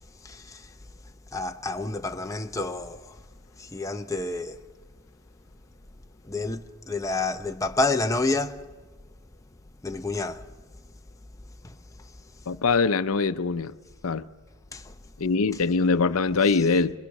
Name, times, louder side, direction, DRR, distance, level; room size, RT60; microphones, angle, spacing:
voice 1, 0.2-0.7 1.3-3.2 3.6-4.6 6.2-8.6 9.8-10.4 11.6-11.8 14.7-14.9, left 3 dB, 15° left, 0.7 m, -29 dB
voice 2, 12.5-13.7 14.0-14.2 15.2-16.9, left 4 dB, 75° left, 0.6 m, -23 dB
26.0 x 22.0 x 6.6 m
head